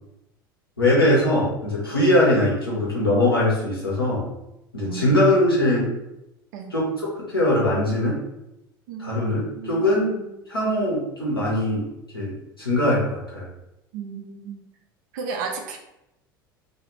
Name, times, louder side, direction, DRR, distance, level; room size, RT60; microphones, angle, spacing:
voice 1, 0.8-4.3 4.7-5.9 6.7-8.2 9.0-10.1 10.5-11.9 12.1-13.5, left 1 dB, 85° left, -5 dB, 0.9 m, -21 dB
voice 2, 4.8-5.4 6.5-6.7 8.9-9.2 9.6-10.3 13.9-14.6 15.1-15.8, right 5 dB, 55° right, 3 dB, 0.5 m, -34 dB
2.4 x 2.4 x 3.0 m, 0.89 s
figure-of-eight pair, 70°, 12 cm